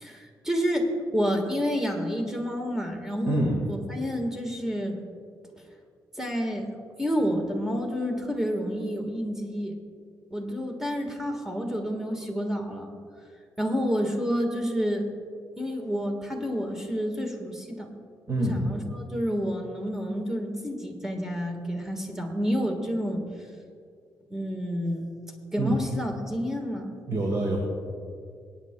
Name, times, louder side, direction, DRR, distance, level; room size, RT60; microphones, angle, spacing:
voice 1, 0.0-5.0 6.2-6.7 7.0-9.7 10.3-12.9 13.6-15.1 15.6-17.9 18.4-23.2 24.3-25.1 25.5-26.9, equal, 5° right, 2 dB, 1.4 m, -29 dB
voice 2, 18.3-18.6 25.6-25.8 27.1-27.6, right 2 dB, 40° right, -1 dB, 1.7 m, -26 dB
24.0 x 9.4 x 2.2 m, 2.2 s
cardioid pair, 135°, 7 cm